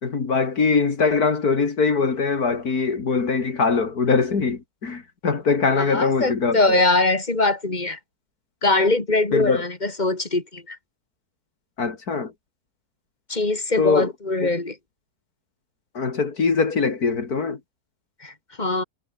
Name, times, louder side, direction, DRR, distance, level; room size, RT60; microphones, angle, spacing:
voice 1, 0.0-6.8 9.3-9.6 11.8-12.3 13.8-14.1 14.4-14.5 15.9-17.6, left 4 dB, 75° left, 2.9 m, -22 dB
voice 2, 5.8-8.0 8.6-10.8 13.3-14.8 18.2-18.8, left 2 dB, 25° left, 3.8 m, -22 dB
omnidirectional pair, 1.6 m